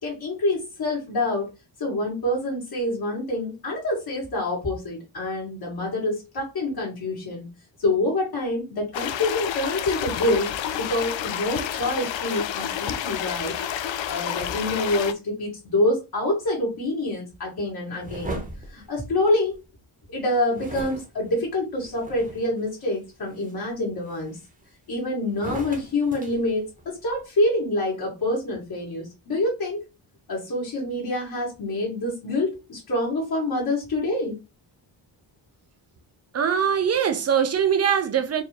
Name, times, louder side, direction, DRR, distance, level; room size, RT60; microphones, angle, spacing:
voice 1, 0.0-1.5 1.8-7.5 7.8-13.5 13.8-18.4 18.7-19.6 20.1-24.4 24.9-29.8 30.3-34.4, left 1 dB, 50° left, 1.8 m, -26 dB
sound 1, 8.9-15.1, left 10 dB, 75° left, 0.6 m, -30 dB
sound 2, 18.0-19.7 20.5-22.6 23.1-23.5 24.1-24.9 25.3-27.2, right 1 dB, 15° right, 1.0 m, -38 dB
voice 2, 36.3-38.4, right 8 dB, 35° right, 0.5 m, -22 dB
4.5 x 2.7 x 3.2 m
wide cardioid pair, 160°, 46 cm